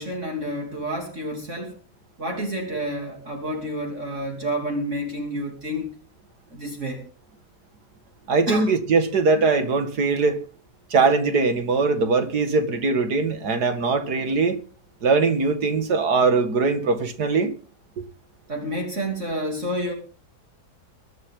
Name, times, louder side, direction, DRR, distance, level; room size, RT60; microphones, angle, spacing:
voice 1, 0.0-1.8 2.2-5.9 6.5-7.0 8.5-8.7 18.5-19.9, equal, 45° right, 3.4 m, -29 dB
voice 2, 8.3-10.4 10.9-14.6 15.0-17.5, right 4 dB, 75° right, 2.4 m, -21 dB
23.5 x 10.5 x 3.8 m
omnidirectional pair, 1.7 m